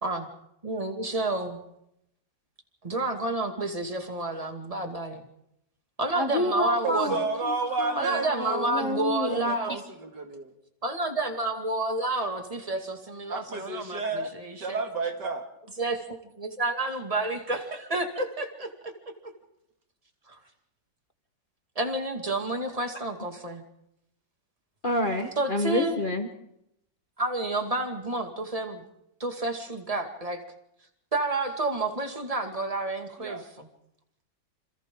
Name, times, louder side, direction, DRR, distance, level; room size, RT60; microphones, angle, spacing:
voice 1, 0.6-1.6 2.8-5.2 6.0-7.2 8.0-9.8 10.8-14.8 15.8-18.5 18.8-18.9 20.3-20.4 21.8-23.6 25.4-26.0 27.2-28.8 29.2-30.4 31.1-33.7, right 2 dB, 20° right, 4 dB, 2.3 m, -30 dB
voice 2, 6.1-9.8 24.8-26.3, left 1 dB, 30° left, 5 dB, 1.5 m, -29 dB
voice 3, 6.8-9.0 9.3-10.5 13.3-15.5 18.2-18.3 33.2-33.4, right 4 dB, 65° right, 4 dB, 3.0 m, -32 dB
27.5 x 27.5 x 3.9 m, 0.79 s
omnidirectional pair, 2.0 m